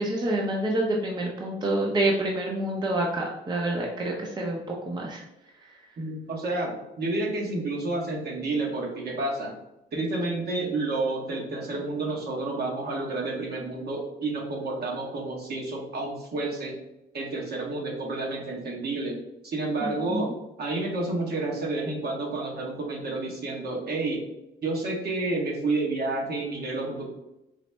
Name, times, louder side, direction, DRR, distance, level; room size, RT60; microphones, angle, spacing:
voice 1, 0.0-5.2 5.6-5.7 19.8-20.3, right 1 dB, 20° right, -1 dB, 0.6 m, -28 dB
voice 2, 6.0-9.5 9.9-16.7 17.1-19.2 19.4-20.3 20.6-24.2 24.6-27.1, right 2 dB, 55° right, -1 dB, 1.1 m, -30 dB
4.0 x 2.0 x 3.3 m, 0.90 s
cardioid pair, 90°, 20 cm